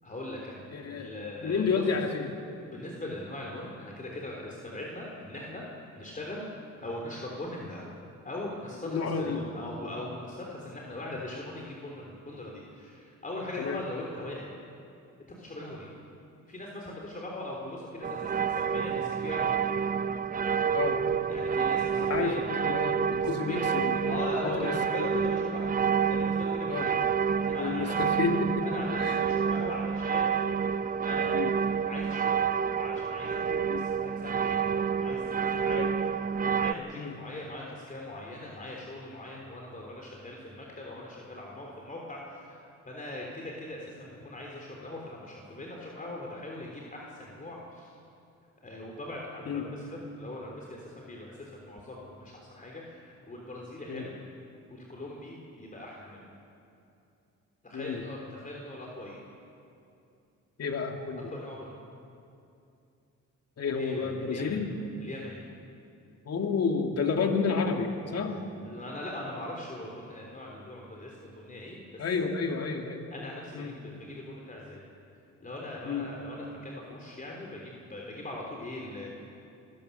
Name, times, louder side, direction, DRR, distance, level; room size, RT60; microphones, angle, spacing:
voice 1, 0.0-1.9 2.7-5.7 5.9-6.5 6.8-7.9 8.2-14.5 15.3-15.9 16.5-19.5 21.3-22.4 23.1-23.7 24.1-25.7 26.1-27.0 27.4-28.0 28.6-30.3 31.1-31.3 31.8-32.4 32.7-34.7 35.0-35.8 36.4-48.0 48.6-54.2 54.7-56.4 57.6-59.2 61.3-61.8 63.7-64.6 65.0-65.4 68.2-72.3 73.1-74.8 75.4-79.1, left 1 dB, 25° left, -2 dB, 3.7 m, -40 dB
voice 2, 0.7-2.3 8.8-9.4 13.6-13.8 20.7-21.0 22.0-24.2 24.6-25.1 26.7-27.1 27.6-28.7 28.9-29.2 31.3-31.5 33.7-33.9 35.7-35.9 37.0-37.1 49.5-49.7 53.9-54.0 57.7-58.0 60.6-61.3 63.6-64.7 66.3-68.4 72.0-73.1 73.5-73.7 75.8-76.1, left 5 dB, 55° left, 3 dB, 2.7 m, -30 dB
sound 1, 18.0-36.7, right 7 dB, 30° right, 0.6 m, -28 dB
25.0 x 16.0 x 7.0 m, 2.6 s
cardioid pair, 90°, 30 cm